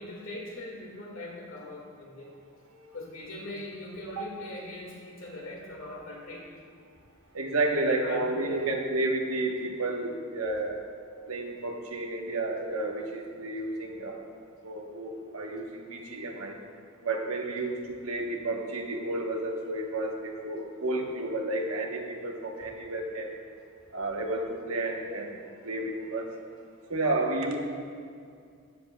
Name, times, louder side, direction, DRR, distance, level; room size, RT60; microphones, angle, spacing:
voice 1, 0.0-2.3 2.9-6.5 7.8-8.6, left 1 dB, 70° left, -2 dB, 1.9 m, -41 dB
voice 2, 7.3-10.8 11.3-14.3 14.6-16.6 17.0-23.4 23.9-25.4 25.6-26.3 26.9-27.6, right 2 dB, 85° right, 1 dB, 1.2 m, -31 dB
16.0 x 7.7 x 2.3 m, 2.3 s
head